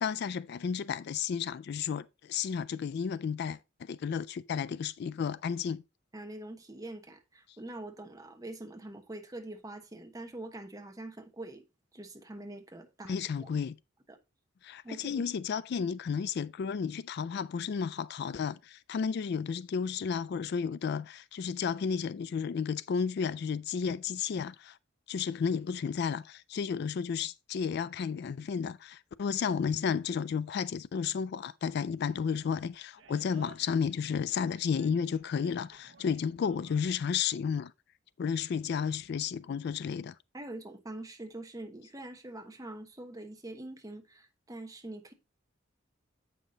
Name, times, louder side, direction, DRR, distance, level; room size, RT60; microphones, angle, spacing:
voice 1, 0.0-5.8 13.0-13.7 14.6-24.8 25.1-37.7 38.2-40.1, left 6 dB, 55° left, 0.3 m, -32 dB
voice 2, 6.1-11.6 11.9-13.5 14.1-14.2 14.8-15.2 40.3-45.1, right 1 dB, 20° right, 1.0 m, -44 dB
Animal, 32.1-37.1, right 4 dB, 75° right, 1.0 m, -58 dB
8.2 x 5.7 x 3.8 m
head